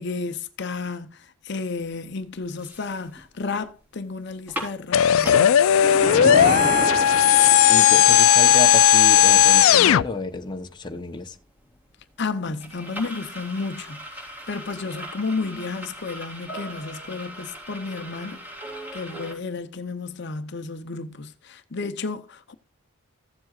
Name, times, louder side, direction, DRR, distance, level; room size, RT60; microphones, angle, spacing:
voice 1, 0.0-5.7 6.0-7.1 12.2-18.4 18.9-22.5, left 4 dB, 50° left, 0.7 m, -32 dB
sound 1, 1.9-2.0 2.4-3.6 3.9-4.0 4.3-5.5 6.1-6.2 6.5-19.3, equal, 10° right, 3.9 m, -39 dB
sound 2, 4.9-10.0, left 10 dB, 70° left, 0.3 m, -16 dB
sound 3, 5.8-8.1, right 3 dB, 30° right, 0.8 m, -28 dB
voice 2, 7.7-11.4, left 2 dB, 20° left, 0.8 m, -31 dB
15.5 x 7.6 x 2.4 m
head